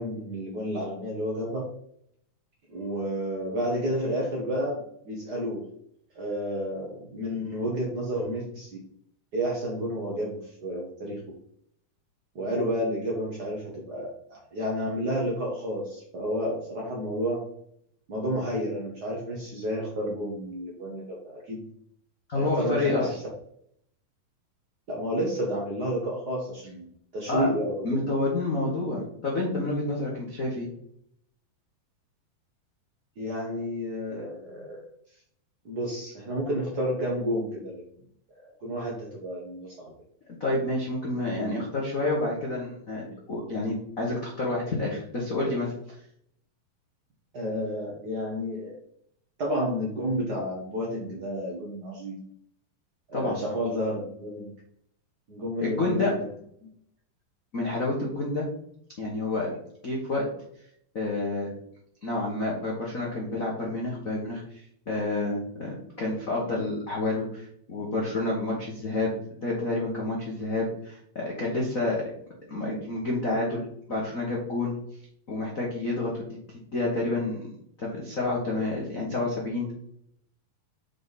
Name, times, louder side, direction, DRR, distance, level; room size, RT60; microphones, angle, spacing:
voice 1, 0.0-1.7 2.7-5.7 6.1-8.8 9.3-11.2 12.3-17.4 18.1-21.6 22.3-23.1 24.9-26.9 27.1-28.0 33.2-34.8 35.6-37.8 38.4-39.9 47.3-48.8 49.4-52.2 53.1-54.5 55.3-56.2 56.6-56.7, equal, 70° right, -3 dB, 0.9 m, -31 dB
voice 2, 22.3-23.1 27.3-27.5 27.8-30.7 40.4-45.7 53.1-53.4 55.6-56.1 57.5-58.5 59.0-59.5 59.8-60.2 60.9-61.5 62.0-69.1 69.4-72.0 72.5-73.6 73.9-74.7 75.3-76.4 76.7-77.5 77.8-79.7, left 2 dB, 70° left, -4 dB, 0.7 m, -29 dB
6.0 x 5.3 x 4.1 m, 0.68 s
omnidirectional pair, 4.1 m